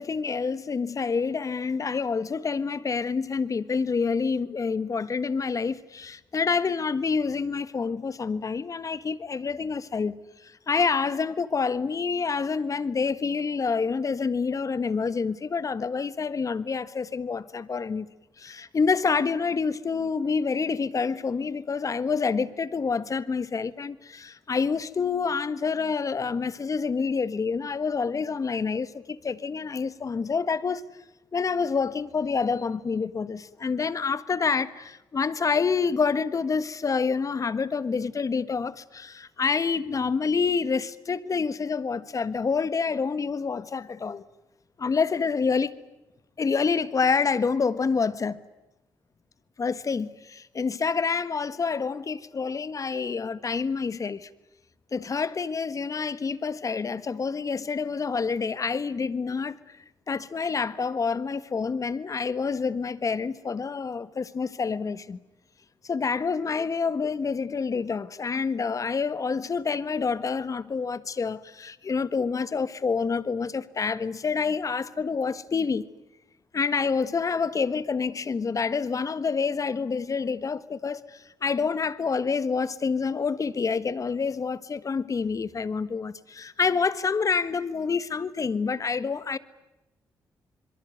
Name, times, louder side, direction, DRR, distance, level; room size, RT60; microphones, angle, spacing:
voice 1, 0.0-18.1 18.4-30.8 31.3-44.3 44.8-45.7 46.4-48.4 49.6-54.3 54.9-59.6 60.1-65.2 65.8-75.9 76.5-89.4, left 5 dB, 45° left, 1.4 m, -27 dB
27.0 x 22.5 x 9.3 m
supercardioid pair, 55°, 8 cm